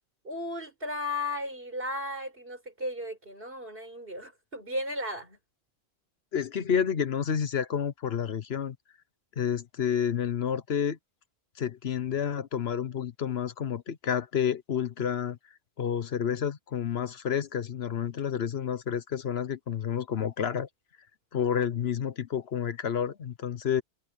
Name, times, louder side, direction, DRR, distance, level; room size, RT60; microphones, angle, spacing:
voice 1, 0.2-5.4, left 1 dB, 60° right, 5.4 m, -35 dB
voice 2, 6.3-8.8 9.4-11.0 11.6-15.4 15.8-20.7 21.3-23.8, left 8 dB, 70° left, 1.1 m, -29 dB
omnidirectional pair, 1.1 m